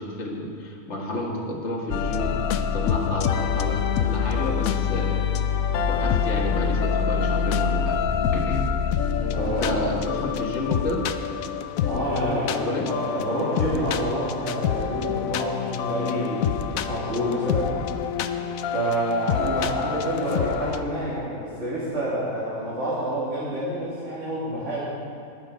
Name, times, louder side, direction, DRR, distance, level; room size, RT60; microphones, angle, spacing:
voice 1, 0.0-5.3 5.9-8.0 8.3-8.7 9.4-11.1 12.6-12.9, left 1 dB, 55° left, -2 dB, 1.9 m, -30 dB
sound 1, 1.9-20.8, left 7 dB, 75° left, 1.0 m, -26 dB
voice 2, 9.0-9.8 10.0-10.2 11.8-17.7 18.7-24.8, right 1 dB, 55° right, -10 dB, 3.0 m, -28 dB
19.5 x 7.2 x 5.1 m, 2.6 s
omnidirectional pair, 1.5 m